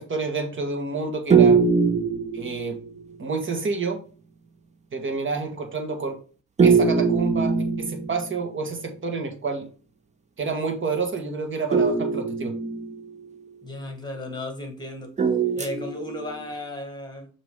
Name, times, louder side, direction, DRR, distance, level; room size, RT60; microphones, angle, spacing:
voice 1, 0.0-1.6 2.3-2.8 3.2-4.0 4.9-6.2 6.6-9.7 10.4-12.5, right 4 dB, 40° right, 5 dB, 1.6 m, -29 dB
sound 1, 1.3-3.0 6.6-8.4 11.7-13.3 15.2-16.4, right 5 dB, 25° right, 0.7 m, -21 dB
voice 2, 13.6-15.1 15.5-17.3, left 1 dB, 15° left, 4 dB, 1.8 m, -35 dB
6.8 x 3.1 x 4.7 m, 0.39 s
cardioid pair, 90°, 30 cm